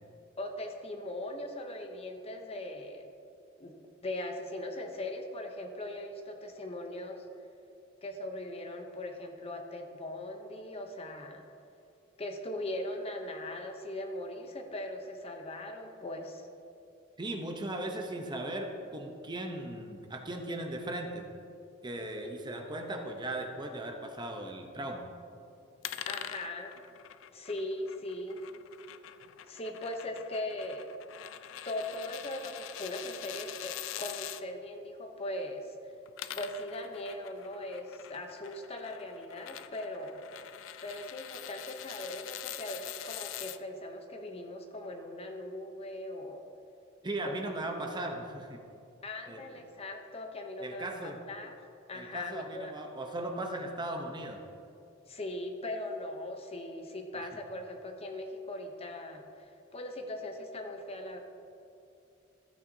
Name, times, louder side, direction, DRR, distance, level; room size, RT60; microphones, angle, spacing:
voice 1, 0.4-3.1 3.6-3.7 4.0-7.2 8.0-11.4 12.2-16.5 26.0-26.7 27.3-28.4 29.4-30.9 31.6-35.9 36.3-40.2 40.8-46.4 47.2-47.4 49.0-51.5 51.9-52.7 55.1-61.2, left 1 dB, 30° left, 4 dB, 0.7 m, -39 dB
voice 2, 17.2-21.2 21.8-25.1 47.0-48.6 49.3-49.6 50.6-51.2 51.9-54.4, right 1 dB, 25° right, 3 dB, 0.8 m, -38 dB
sound 1, 25.8-34.4 35.9-43.6, left 11 dB, 70° left, 0.4 m, -44 dB
13.5 x 8.7 x 2.7 m, 2.6 s
head